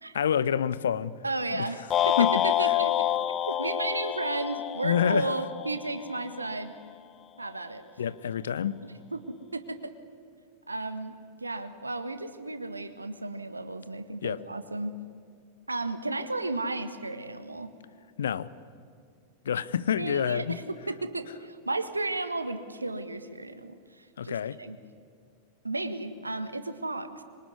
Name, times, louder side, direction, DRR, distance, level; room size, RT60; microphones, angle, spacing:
voice 1, 0.1-1.2 1.5-1.7 2.2-2.8 4.8-5.3 8.0-8.8 14.2-14.4 18.2-18.5 19.4-20.6 24.2-24.6, left 8 dB, 65° left, 0.9 m, -28 dB
voice 2, 1.2-6.7 7.4-7.8 9.1-9.9 10.7-11.1 11.4-15.0 15.7-17.7 20.0-24.8 25.6-27.2, right 2 dB, 80° right, 1.6 m, -34 dB
sound 1, 1.9-6.2, left 12 dB, 30° left, 0.8 m, -28 dB
26.0 x 24.0 x 9.6 m
figure-of-eight pair, 90°, 0 cm